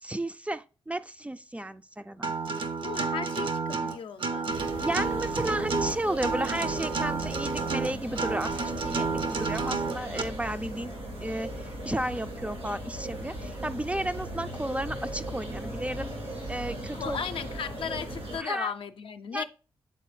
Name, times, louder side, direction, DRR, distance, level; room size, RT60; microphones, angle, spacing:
voice 1, 0.0-2.3 4.8-10.9 11.2-16.1 16.5-17.2 18.4-18.7 19.3-19.4, right 1 dB, 15° right, 0.3 m, -33 dB
Acoustic guitar, 2.2-10.2, right 4 dB, 55° right, 0.6 m, -30 dB
voice 2, 2.8-4.6 16.9-19.4, left 7 dB, 65° left, 0.5 m, -36 dB
sound 1, 4.5-18.4, right 1 dB, 85° right, 2.7 m, -38 dB
7.6 x 4.0 x 3.1 m
supercardioid pair, 45°, 10 cm